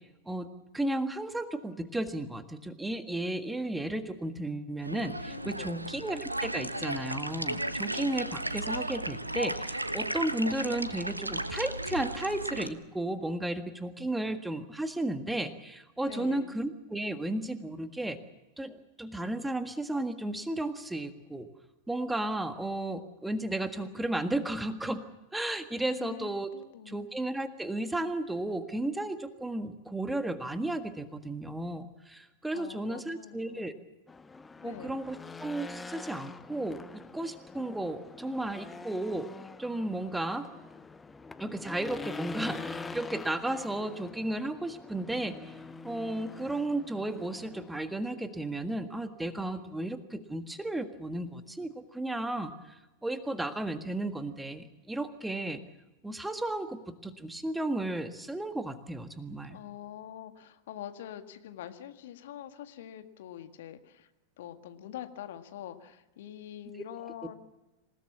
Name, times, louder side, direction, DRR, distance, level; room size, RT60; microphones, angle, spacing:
voice 1, 0.2-18.2 18.6-21.5 21.9-25.0 25.3-26.5 26.8-33.7 34.6-36.8 37.1-39.3 39.6-40.5 41.4-45.5 45.8-52.5 53.0-55.6 56.0-59.6, right 1 dB, 5° right, 9 dB, 1.6 m, -34 dB
sound 1, 4.8-12.7, right 1 dB, 85° right, 1.2 m, -35 dB
voice 2, 5.3-5.9 16.1-16.6 25.9-27.1 32.5-33.8 34.6-34.9 59.5-64.1 64.4-67.3, left 11 dB, 55° left, 8 dB, 1.8 m, -45 dB
Race car auto racing / Engine, 34.1-47.7, left 4 dB, 10° left, 0.8 m, -45 dB
27.5 x 18.0 x 7.3 m, 1.0 s
figure-of-eight pair, 90°, 0 cm